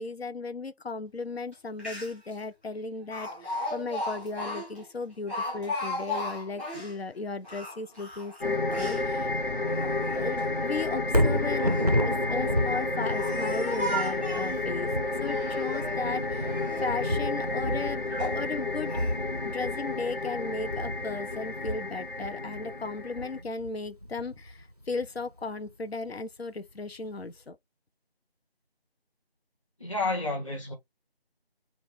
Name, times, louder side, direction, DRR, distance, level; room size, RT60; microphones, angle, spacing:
voice 1, 0.0-9.3 10.1-11.7 12.0-18.1 18.3-19.0 19.4-27.6, left 3 dB, 80° left, 0.6 m, -36 dB
Speech, 1.5-1.6 1.8-2.3 3.1-7.0 7.4-9.1 9.6-10.4 11.3-11.9 12.6-14.6 15.2-16.0 16.4-16.9 17.5-17.6 18.1-18.4 18.9-19.1, left 1 dB, 10° left, 1.3 m, -36 dB
sound 1, 8.4-23.4, left 3 dB, 55° left, 1.0 m, -31 dB
Thunder, 11.0-25.2 25.7-25.8, equal, 40° right, 0.4 m, -32 dB
voice 2, 29.8-30.7, left 2 dB, 30° left, 1.6 m, -30 dB
5.3 x 2.4 x 3.4 m
figure-of-eight pair, 170°, 31 cm